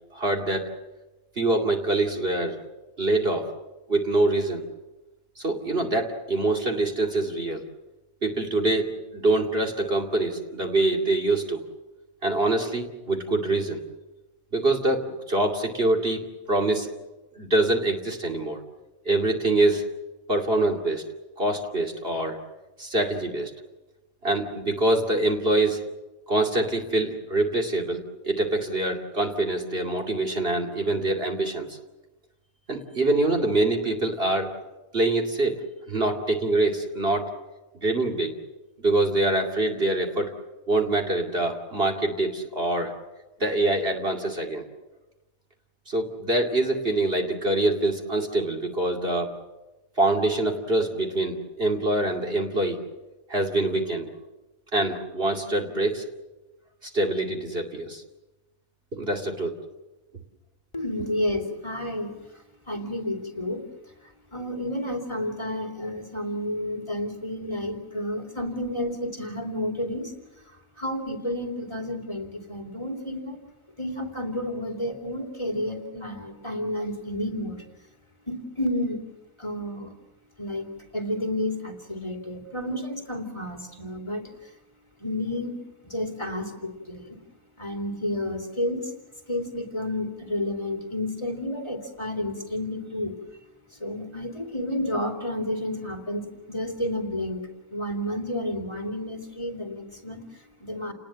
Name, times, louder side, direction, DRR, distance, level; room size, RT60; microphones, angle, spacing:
voice 1, 0.1-0.7 1.4-2.6 3.0-3.5 3.9-4.6 5.4-7.7 8.2-11.6 12.2-13.8 14.5-16.9 17.4-18.6 19.1-19.9 20.3-21.0 21.4-22.4 22.8-23.5 24.2-25.8 26.3-31.8 32.7-34.5 34.9-35.6 35.9-37.3 37.8-38.3 38.8-40.3 40.7-42.9 43.4-44.6 45.9-49.3 50.0-52.8 53.3-54.1 54.7-56.1 56.8-58.0 58.9-59.6, right 2 dB, 40° right, 2 dB, 2.7 m, -25 dB
voice 2, 60.7-63.6 64.0-73.4 73.8-77.6 78.3-79.0 79.4-79.9 80.4-84.5 85.0-85.6 85.8-87.2 87.6-88.9 89.3-93.2 93.7-100.9, left 1 dB, 20° left, 2 dB, 2.8 m, -31 dB
29.5 x 19.5 x 7.5 m, 1.1 s
omnidirectional pair, 1.5 m